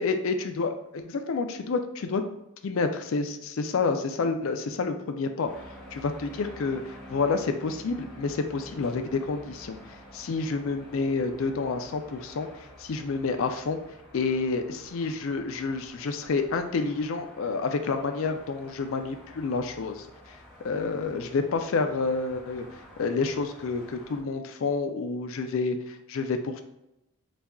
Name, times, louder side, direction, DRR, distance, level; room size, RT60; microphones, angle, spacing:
voice 1, 0.0-2.2 2.6-5.5 5.9-9.8 10.1-12.5 12.8-13.8 14.1-20.4 20.6-22.7 23.0-26.6, left 4 dB, 60° left, 7 dB, 0.4 m, -29 dB
sound 1, 5.5-24.2, equal, 5° left, 1.4 m, -49 dB
4.1 x 2.3 x 3.5 m, 0.89 s
head